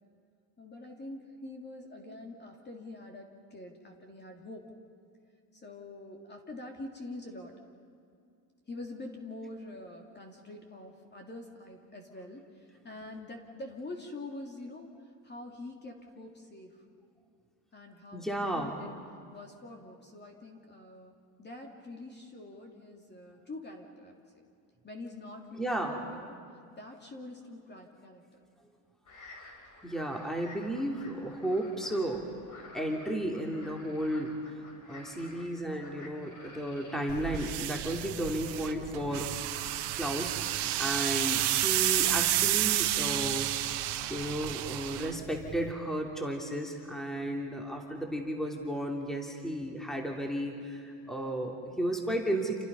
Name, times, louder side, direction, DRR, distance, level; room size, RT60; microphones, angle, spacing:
voice 1, 0.6-4.7 5.5-7.6 8.7-14.9 15.2-16.8 17.7-24.1 24.8-25.8 26.1-26.4 26.7-28.5, left 2 dB, 20° left, 2 dB, 3.1 m, -45 dB
voice 2, 18.1-18.7 25.6-26.2 29.8-32.3 32.7-34.3 34.9-39.4 39.9-43.8 44.1-52.6, right 1 dB, ahead, 1 dB, 3.0 m, -33 dB
sound 1, 29.1-37.4, left 2 dB, 40° left, 6.0 m, -52 dB
sound 2, 37.1-45.7, right 14 dB, 60° right, 1.6 m, -31 dB
29.5 x 28.5 x 5.5 m, 2.4 s
cardioid pair, 125°, 46 cm